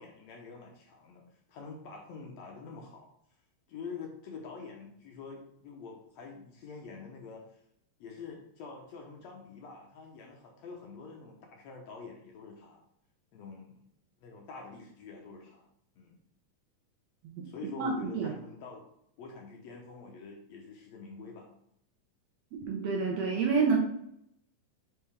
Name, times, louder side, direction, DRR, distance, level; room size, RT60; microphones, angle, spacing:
voice 1, 0.0-3.1 3.7-7.6 8.0-12.8 13.3-13.9 14.2-15.7 16.0-16.2 17.4-18.8 19.2-21.5, left 4 dB, 70° left, 0 dB, 1.8 m, -46 dB
voice 2, 17.8-18.3 22.5-23.8, right 5 dB, 70° right, -1 dB, 1.7 m, -29 dB
5.6 x 5.0 x 3.4 m, 0.72 s
omnidirectional pair, 3.7 m